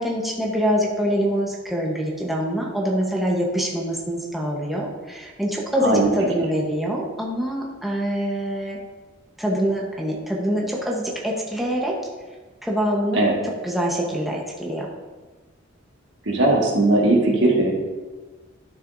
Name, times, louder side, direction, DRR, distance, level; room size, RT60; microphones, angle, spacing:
voice 1, 0.0-8.8 9.4-11.9 12.6-13.2 13.6-14.9, equal, ahead, -3 dB, 1.0 m, -25 dB
voice 2, 16.2-17.7, right 2 dB, 65° right, -1 dB, 1.7 m, -18 dB
11.5 x 6.5 x 2.7 m, 1.3 s
head